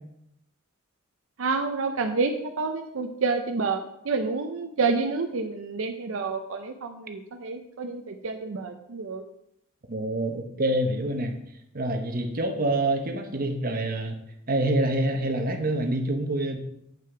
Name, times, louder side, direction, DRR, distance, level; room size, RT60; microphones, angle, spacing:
voice 1, 1.4-9.2, right 4 dB, 75° right, 6 dB, 0.6 m, -29 dB
voice 2, 9.9-11.4 11.7-14.2 14.5-16.6, right 1 dB, 45° right, 5 dB, 1.0 m, -26 dB
7.8 x 5.6 x 4.9 m, 0.80 s
head